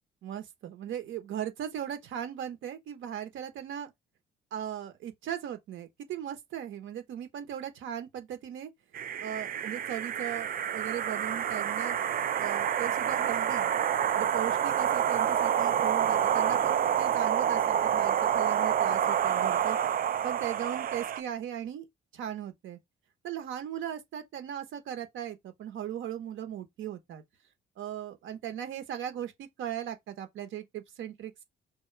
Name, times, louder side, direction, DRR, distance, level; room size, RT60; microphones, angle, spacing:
voice 1, 0.2-3.9 4.5-8.7 9.2-12.0 12.4-13.7 14.1-19.8 20.2-21.9 22.1-22.8 23.2-27.2 27.8-31.4, right 10 dB, 80° right, 1.1 m, -38 dB
sound 1, 8.9-21.2, right 9 dB, 45° right, 0.4 m, -28 dB
5.2 x 2.4 x 3.3 m
cardioid pair, 90°, 20 cm